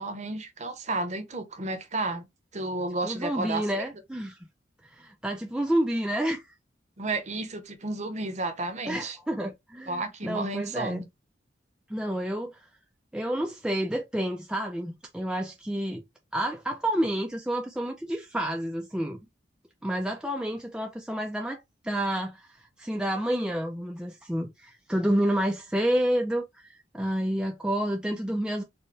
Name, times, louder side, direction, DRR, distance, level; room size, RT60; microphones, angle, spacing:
voice 1, 0.0-2.3 2.5-3.8 7.0-9.2 9.9-11.1, right 2 dB, 40° right, 0.8 m, -32 dB
voice 2, 3.0-4.5 4.9-6.4 8.9-11.0 11.9-12.6 13.1-16.0 16.3-19.2 19.8-28.6, right 1 dB, 5° right, 0.4 m, -29 dB
4.3 x 2.2 x 3.2 m
head